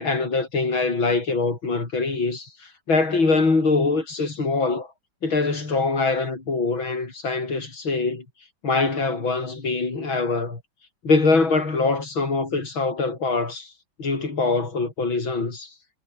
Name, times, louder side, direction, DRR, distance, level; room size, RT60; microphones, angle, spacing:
voice 1, 0.0-4.9 5.2-8.3 8.6-10.6 11.0-13.7 14.0-15.7, left 3 dB, 85° left, 5.6 m, -23 dB
omnidirectional pair, 2.1 m